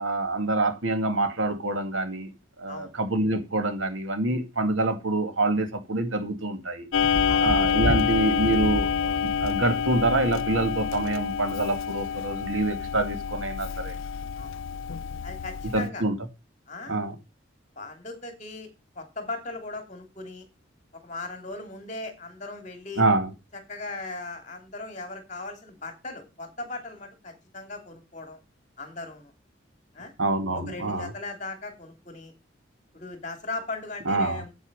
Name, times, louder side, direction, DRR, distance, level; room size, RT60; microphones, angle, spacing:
voice 1, 0.0-2.3 2.6-6.9 7.4-14.0 15.7-16.1 16.9-17.2 23.0-23.3 30.2-31.1 34.1-34.4, right 2 dB, 90° right, 2.1 m, -26 dB
Clock, 6.9-15.9, left 7 dB, 85° left, 0.5 m, -28 dB
Thunder, 7.0-10.9 12.2-12.3, left 1 dB, 50° right, 1.6 m, -32 dB
voice 2, 15.2-16.0 16.7-17.0 17.8-18.7 18.9-20.5 20.9-23.0 23.5-28.4 28.8-29.3 29.9-30.1 30.5-32.3 32.9-34.5, left 3 dB, 40° left, 2.8 m, -38 dB
8.4 x 8.3 x 5.3 m
head